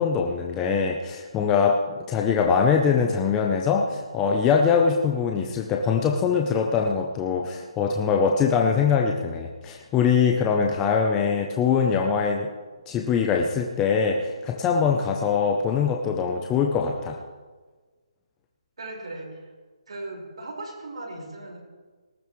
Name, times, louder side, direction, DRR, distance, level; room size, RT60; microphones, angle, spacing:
voice 1, 0.0-1.8 2.1-12.5 12.9-17.2, left 6 dB, 10° left, 1 dB, 0.6 m, -23 dB
voice 2, 18.8-19.5 19.9-21.6, right 2 dB, 70° right, -1 dB, 4.7 m, -37 dB
19.0 x 14.0 x 3.1 m, 1.4 s
hypercardioid pair, 170°, 3 cm